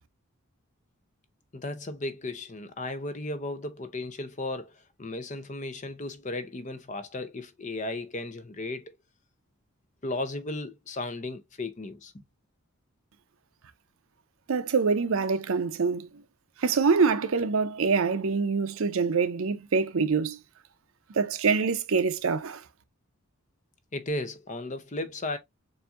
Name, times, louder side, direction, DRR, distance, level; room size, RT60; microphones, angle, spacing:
voice 1, 1.5-8.9 10.0-12.2 23.9-25.4, left 2 dB, 35° left, 0.7 m, -35 dB
voice 2, 14.5-16.1 16.6-20.4 21.1-22.6, right 5 dB, 70° right, 0.6 m, -25 dB
7.0 x 2.6 x 2.4 m
head